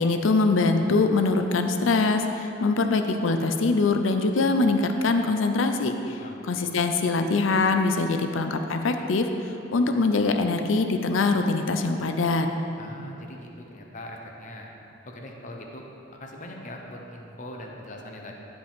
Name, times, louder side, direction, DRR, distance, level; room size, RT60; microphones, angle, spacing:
voice 1, 0.0-6.2 6.4-9.3 9.7-12.5, left 3 dB, 80° left, 6 dB, 0.5 m, -23 dB
voice 2, 6.1-6.4 12.8-14.7 15.0-15.8 16.1-18.4, left 1 dB, 40° left, 1 dB, 0.9 m, -41 dB
15.0 x 5.2 x 3.6 m, 2.8 s
head